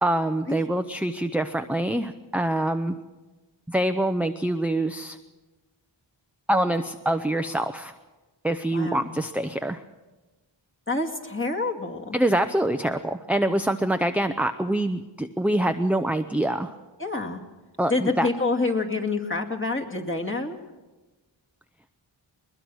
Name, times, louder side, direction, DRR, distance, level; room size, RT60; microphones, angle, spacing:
voice 1, 0.0-3.0 3.7-5.2 6.5-7.9 8.4-9.8 12.1-16.7 17.8-18.3, right 1 dB, 5° right, 7 dB, 0.7 m, -25 dB
voice 2, 8.7-9.2 10.9-12.2 17.0-17.4 17.9-20.6, left 3 dB, 25° left, 1 dB, 2.2 m, -27 dB
21.0 x 21.0 x 6.3 m, 1.2 s
wide cardioid pair, 40°, 46 cm